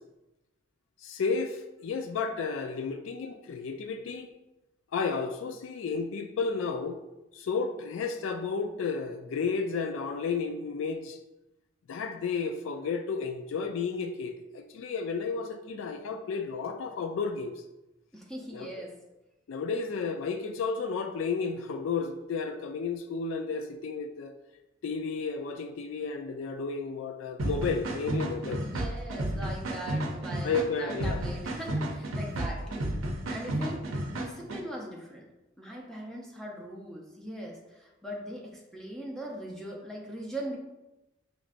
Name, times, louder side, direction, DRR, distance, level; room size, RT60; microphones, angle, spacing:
voice 1, 1.0-4.3 4.9-7.0 7.3-11.2 11.9-17.5 18.5-18.7 19.5-24.3 24.8-28.6 30.4-31.2, left 4 dB, 75° left, 6 dB, 0.3 m, -32 dB
voice 2, 18.1-19.0 28.6-33.0 33.3-35.3 35.6-40.6, right 1 dB, ahead, -2 dB, 0.6 m, -40 dB
sound 1, 27.4-34.6, right 1 dB, 85° right, 0.6 m, -32 dB
5.0 x 3.1 x 2.5 m, 0.98 s
head